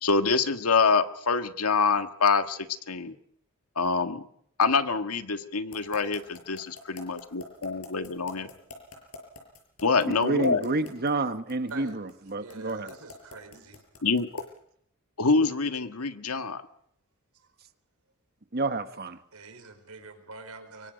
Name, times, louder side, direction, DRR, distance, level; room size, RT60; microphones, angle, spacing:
voice 1, 0.0-2.6 2.9-3.1 3.8-4.2 4.6-8.5 9.8-10.7 14.0-14.4 15.2-16.6, left 4 dB, 90° left, 8 dB, 1.6 m, -25 dB
sound 1, 5.7-14.6, left 3 dB, 70° left, 6.5 m, -45 dB
voice 2, 10.0-12.9 18.5-19.2, right 2 dB, 45° right, 10 dB, 1.4 m, -29 dB
voice 3, 12.3-13.8 19.3-20.9, right 3 dB, 85° right, 7 dB, 4.5 m, -45 dB
25.0 x 23.5 x 5.2 m, 0.70 s
head